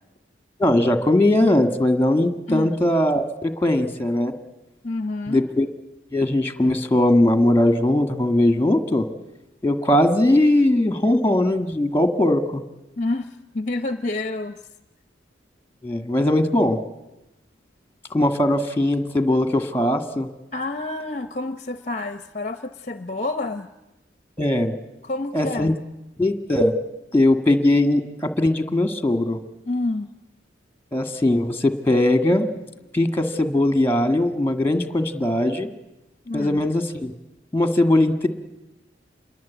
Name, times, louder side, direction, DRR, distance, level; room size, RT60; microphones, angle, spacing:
voice 1, 0.6-4.3 5.3-5.7 6.1-9.1 9.6-12.6 15.8-16.8 18.1-20.3 24.4-24.7 25.3-25.8 26.2-26.7 27.1-29.4 30.9-32.5 32.9-35.7 36.3-37.1 37.5-38.3, left 1 dB, 10° left, 8 dB, 1.8 m, -20 dB
voice 2, 4.8-5.4 13.0-14.6 20.5-23.7 25.0-25.8 29.7-30.1 36.3-36.6, left 2 dB, 40° left, 10 dB, 0.8 m, -28 dB
27.5 x 22.0 x 8.4 m, 0.98 s
head